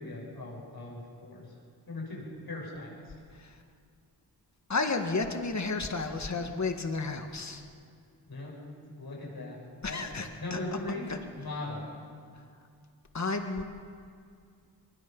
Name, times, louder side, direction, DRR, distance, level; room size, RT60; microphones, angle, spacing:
voice 1, 0.0-1.4 1.9-3.1 6.1-6.2 8.2-8.6 8.9-10.0 10.4-11.9, left 2 dB, 70° left, -3 dB, 8.0 m, -39 dB
voice 2, 4.7-7.6 9.8-10.6 11.1-11.2 13.1-13.6, left 3 dB, 45° left, 5 dB, 1.9 m, -32 dB
23.0 x 23.0 x 5.6 m, 2.2 s
wide cardioid pair, 80°, 39 cm